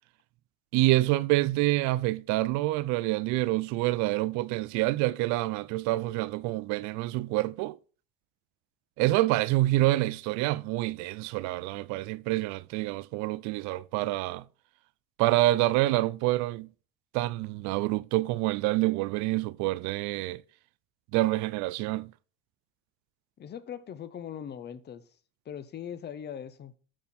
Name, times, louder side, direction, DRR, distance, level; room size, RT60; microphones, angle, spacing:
voice 1, 0.7-7.8 9.0-14.4 15.2-16.7 17.1-20.4 21.1-22.1, right 18 dB, 65° right, 0.5 m, -27 dB
voice 2, 23.4-25.0 25.5-26.7, left 9 dB, 30° left, 0.8 m, -40 dB
12.5 x 4.1 x 4.3 m
supercardioid pair, 120°, 32 cm